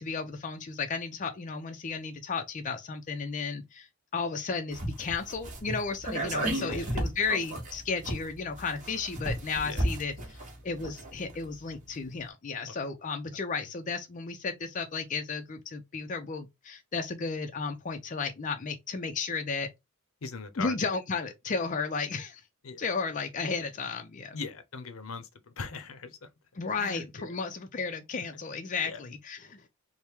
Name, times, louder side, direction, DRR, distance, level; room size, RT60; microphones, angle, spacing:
voice 1, 0.0-19.7 20.6-22.4 22.8-24.4 26.6-29.6, left 4 dB, 35° left, 0.4 m, -34 dB
sound 1, 4.7-11.5 11.7-11.8, right 1 dB, 35° right, 1.1 m, -34 dB
voice 2, 6.5-7.0 9.6-9.9 20.2-20.8 22.6-22.8 24.3-26.3 26.8-27.3 28.8-29.0, left 4 dB, 75° left, 0.7 m, -40 dB
3.4 x 2.1 x 4.3 m
head